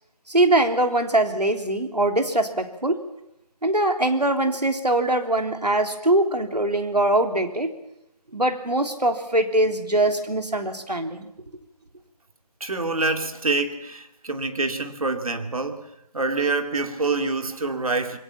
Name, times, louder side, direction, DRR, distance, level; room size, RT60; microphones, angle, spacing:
voice 1, 0.3-3.0 3.6-7.7 8.3-11.3, right 1 dB, 90° right, 5 dB, 3.3 m, -22 dB
voice 2, 12.6-18.2, right 3 dB, 60° right, 6 dB, 2.8 m, -26 dB
26.5 x 23.0 x 5.8 m, 0.84 s
figure-of-eight pair, 155°, 20 cm